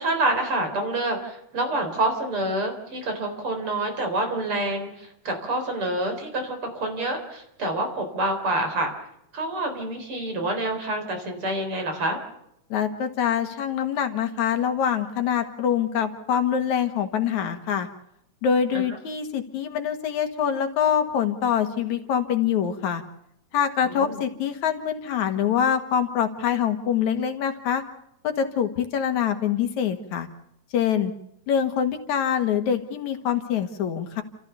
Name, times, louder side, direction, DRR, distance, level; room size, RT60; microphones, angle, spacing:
voice 1, 0.0-8.9 9.3-12.2 23.8-24.2, right 2 dB, 45° right, 4 dB, 4.8 m, -27 dB
voice 2, 12.7-17.9 18.4-23.0 23.5-27.8 28.2-30.3 30.7-31.1 31.5-34.2, left 8 dB, 70° left, 7 dB, 2.9 m, -24 dB
30.0 x 14.5 x 6.9 m, 0.78 s
omnidirectional pair, 3.4 m